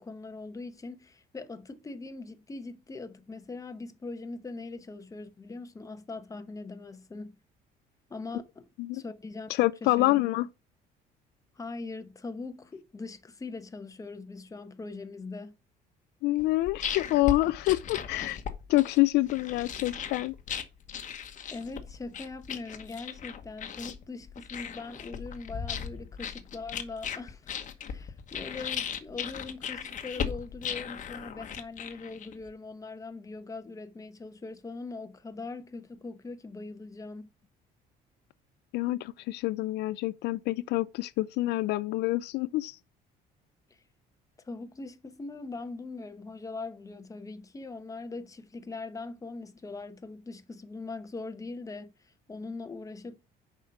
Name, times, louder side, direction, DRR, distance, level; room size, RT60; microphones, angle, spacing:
voice 1, 0.0-7.4 8.1-8.7 8.9-9.5 9.8-10.2 11.5-15.6 21.5-27.5 27.8-37.3 43.7-43.8 44.4-53.2, left 3 dB, 20° left, 0.9 m, -41 dB
voice 2, 9.5-10.5 16.2-18.4 18.7-20.3 38.7-42.8, left 18 dB, 80° left, 0.4 m, -27 dB
sound 1, 16.4-32.5, left 7 dB, 50° left, 1.1 m, -37 dB
6.4 x 5.1 x 5.6 m
cardioid pair, 110°, 17 cm